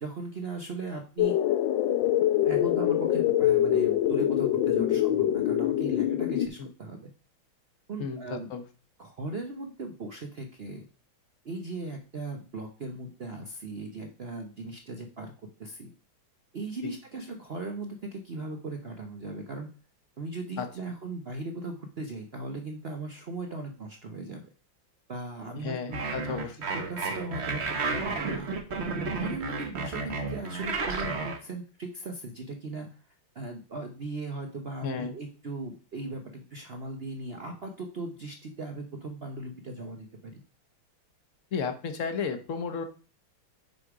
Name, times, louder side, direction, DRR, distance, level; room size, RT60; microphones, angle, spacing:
voice 1, 0.0-1.4 2.4-7.1 7.9-8.5 9.0-10.8 11.4-15.3 15.6-15.9 16.5-19.7 20.2-24.4 25.1-26.0 26.7-27.6 28.0-28.5 29.1-32.9 33.3-40.4, right 2 dB, 70° right, 4 dB, 0.5 m, -38 dB
sound 1, 1.2-6.5, left 12 dB, 75° left, 1.3 m, -24 dB
voice 2, 8.0-8.6 16.8-16.9 20.6-20.7 25.6-26.6 34.8-35.1 41.5-42.8, left 5 dB, 50° left, 8 dB, 1.0 m, -33 dB
sound 2, 25.9-31.4, right 3 dB, 40° right, 1.0 m, -32 dB
6.6 x 5.0 x 4.8 m, 0.36 s
omnidirectional pair, 2.3 m